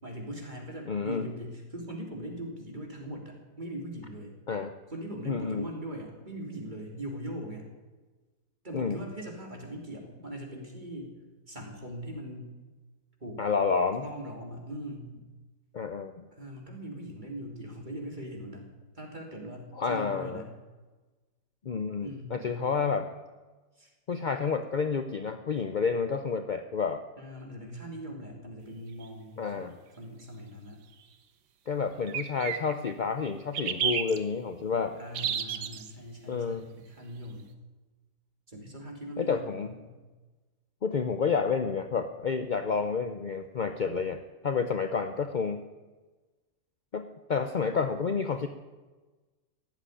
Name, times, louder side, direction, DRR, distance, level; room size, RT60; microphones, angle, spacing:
voice 1, 0.0-4.3 4.9-7.7 8.6-11.1 11.5-12.6 13.2-13.4 14.0-15.1 16.3-18.7 18.9-20.5 22.0-22.6 23.8-23.9 27.2-29.7 30.0-30.8 35.0-37.5 38.5-39.9, right 1 dB, 25° right, 1 dB, 3.2 m, -40 dB
voice 2, 0.9-1.3 4.5-4.7 5.3-5.7 8.7-9.0 13.4-14.1 15.7-16.1 19.8-20.4 21.6-23.1 24.1-27.0 29.4-29.7 31.7-35.0 36.3-36.7 39.2-39.7 40.8-45.6 46.9-48.5, left 5 dB, 50° left, 8 dB, 0.5 m, -30 dB
sound 1, 29.0-29.1 32.1-32.9 33.5-34.2 35.1-35.9, right 8 dB, 85° right, 1.6 m, -31 dB
17.0 x 8.1 x 9.9 m, 1.3 s
omnidirectional pair, 1.8 m